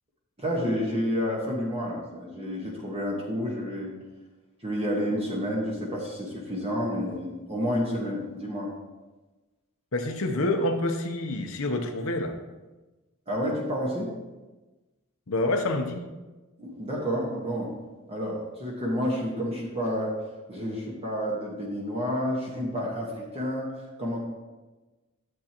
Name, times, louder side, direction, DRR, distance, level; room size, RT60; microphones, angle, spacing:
voice 1, 0.4-3.9 4.6-8.7 13.3-14.1 16.6-17.7 18.1-20.1 20.5-24.2, equal, 30° right, -3 dB, 1.4 m, -30 dB
voice 2, 9.9-12.3 15.3-16.0, left 2 dB, 70° left, 4 dB, 0.8 m, -27 dB
12.0 x 7.5 x 3.0 m, 1.2 s
head